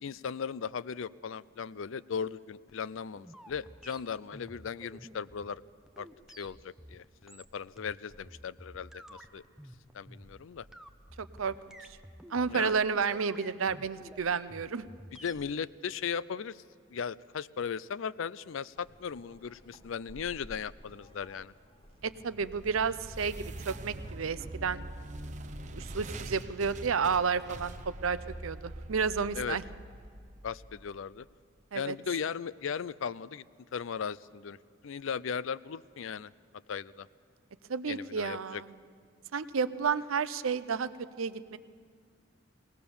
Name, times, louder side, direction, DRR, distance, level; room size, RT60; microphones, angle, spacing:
voice 1, 0.0-5.6 6.0-6.1 6.4-9.4 9.9-10.7 12.5-12.8 15.2-16.6 16.9-21.5 29.3-29.6 30.4-31.3 31.7-33.4 33.7-34.6 34.8-36.3 36.7-37.1 37.9-38.6, left 6 dB, 75° left, 19 dB, 0.4 m, -37 dB
sound 1, 2.7-15.5, equal, ahead, 0.7 m, -52 dB
voice 2, 11.2-11.8 12.3-14.8 22.0-24.8 25.7-29.6 31.7-31.9 37.7-38.7 39.3-41.6, right 5 dB, 85° right, 15 dB, 0.6 m, -31 dB
sound 2, 18.8-24.3, equal, 25° left, 1.5 m, -55 dB
sound 3, 22.0-31.2, right 1 dB, 35° right, 0.8 m, -44 dB
20.5 x 18.5 x 7.0 m, 2.1 s
head